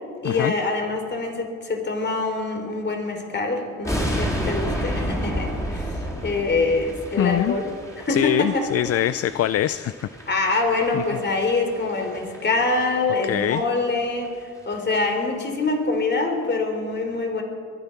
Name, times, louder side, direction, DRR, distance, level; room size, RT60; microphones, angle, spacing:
voice 1, 0.2-7.7 8.0-8.6 10.3-17.4, left 3 dB, 35° left, 4 dB, 3.5 m, -25 dB
sound 1, 3.8-13.0 13.3-13.5 13.9-14.0 14.2-14.3 14.6-14.9 15.2-15.3, equal, 10° left, 4.4 m, -31 dB
voice 2, 7.2-7.6 8.1-9.9 10.9-11.0 13.2-13.6, left 12 dB, 55° left, 15 dB, 0.5 m, -23 dB
22.5 x 11.0 x 5.9 m, 2.2 s
cardioid pair, 90°, 30 cm